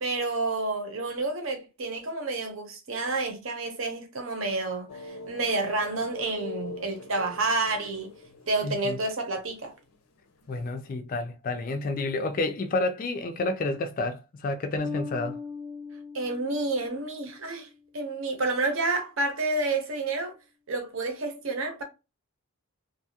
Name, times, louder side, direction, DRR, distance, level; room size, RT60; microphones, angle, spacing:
voice 1, 0.0-8.1 8.5-9.7 16.1-20.4 20.7-21.8, right 3 dB, 60° right, 0.8 m, -29 dB
sound 1, 4.9-10.7, left 2 dB, 85° left, 0.5 m, -42 dB
voice 2, 8.6-9.0 10.5-15.4, left 2 dB, 40° left, 0.3 m, -30 dB
Bass guitar, 14.8-17.8, left 5 dB, 20° right, 0.5 m, -40 dB
2.6 x 2.3 x 2.8 m
head